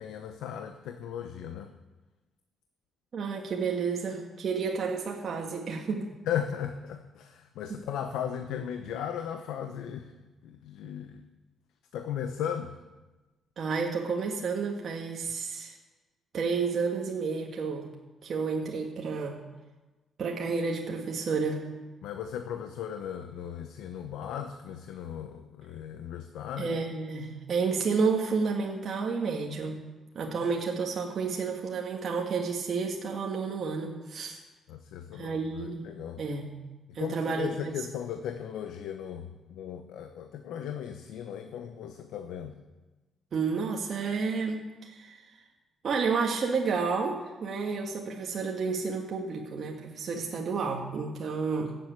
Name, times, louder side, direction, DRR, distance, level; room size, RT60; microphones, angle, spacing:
voice 1, 0.0-1.7 6.2-10.1 10.4-11.2 11.9-12.7 22.0-26.7 34.7-36.2 36.9-42.6, left 9 dB, 90° left, 7 dB, 0.9 m, -37 dB
voice 2, 3.1-6.1 7.7-7.8 13.6-15.8 16.3-17.9 18.2-19.4 20.2-21.7 26.6-29.9 30.2-34.4 35.1-35.8 36.2-36.6 37.0-37.7 43.3-45.3 45.8-51.7, right 5 dB, 55° right, 0 dB, 1.8 m, -31 dB
14.5 x 7.9 x 8.8 m, 1.2 s
cardioid pair, 90°, 0 cm